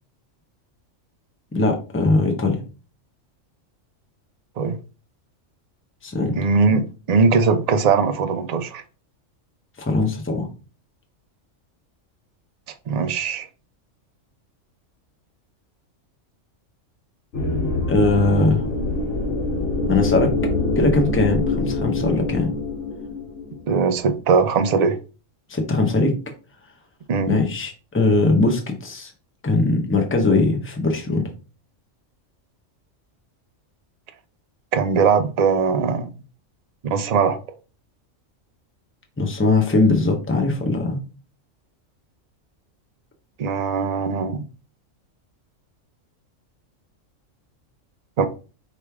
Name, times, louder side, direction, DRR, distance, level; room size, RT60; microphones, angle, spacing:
voice 1, 1.5-2.6 6.0-6.4 9.8-10.5 17.9-18.7 19.9-20.3 20.8-22.5 25.5-26.2 27.3-29.1 29.4-31.3 39.2-41.0, left 3 dB, 10° left, 0.7 m, -20 dB
voice 2, 6.4-8.8 12.9-13.5 23.7-25.0 27.1-27.4 34.7-36.1 36.8-37.4 43.4-44.4 48.2-48.3, right 5 dB, 60° right, 0.4 m, -20 dB
sound 1, 17.3-24.0, left 2 dB, 65° left, 1.3 m, -25 dB
5.0 x 3.1 x 3.4 m
omnidirectional pair, 1.3 m